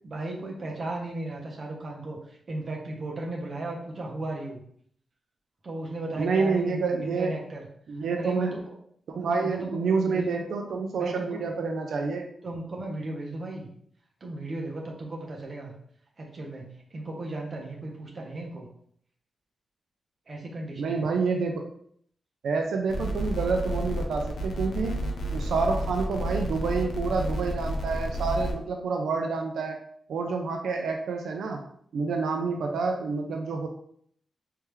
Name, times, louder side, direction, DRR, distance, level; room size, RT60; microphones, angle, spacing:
voice 1, 0.0-4.6 5.6-7.6 8.2-8.7 9.1-10.4 11.0-11.7 12.4-13.7 14.2-15.7 16.2-18.7 20.3-21.1 32.6-32.8, right 2 dB, 35° right, -1 dB, 0.8 m, -36 dB
voice 2, 6.2-7.3 7.9-8.5 9.1-12.3 20.8-21.7 22.4-29.8 30.1-31.6 31.9-33.7, right 4 dB, 90° right, 3 dB, 0.4 m, -28 dB
sound 1, 22.9-28.5, right 1 dB, 70° left, 0.7 m, -31 dB
3.4 x 3.3 x 3.0 m, 0.64 s
wide cardioid pair, 170°, 0 cm